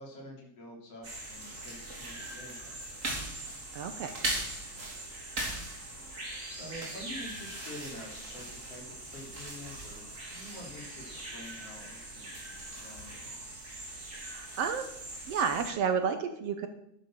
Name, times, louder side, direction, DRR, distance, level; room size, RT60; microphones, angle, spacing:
voice 1, 0.0-3.1 6.5-13.3, left 1 dB, 55° left, 0 dB, 4.3 m, -47 dB
sound 1, 1.0-15.7, right 1 dB, 25° right, 3.2 m, -40 dB
voice 2, 3.7-4.1 14.1-14.9 15.3-16.7, right 6 dB, 65° right, 8 dB, 1.8 m, -31 dB
11.5 x 10.5 x 6.6 m, 0.78 s
omnidirectional pair, 3.3 m